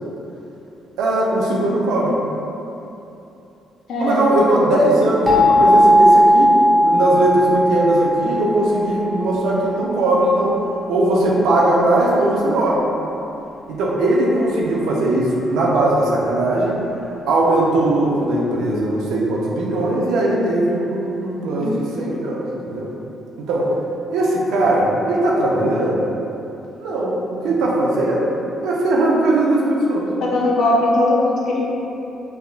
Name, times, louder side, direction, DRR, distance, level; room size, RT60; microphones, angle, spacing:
voice 1, 1.0-2.1 4.0-6.5 6.8-10.6 10.9-12.8 13.7-16.8 17.3-22.9 23.4-23.7 24.1-26.0 26.8-27.2 27.4-28.3 28.6-30.1, right 1 dB, 90° right, -3 dB, 0.4 m, -19 dB
voice 2, 3.9-4.2 21.6-22.3 30.2-31.6, left 2 dB, 70° left, -4 dB, 0.6 m, -20 dB
sound 1, 5.3-10.0, equal, 10° right, 0.7 m, -16 dB
3.4 x 2.2 x 2.4 m, 2.9 s
cardioid pair, 90°, 0 cm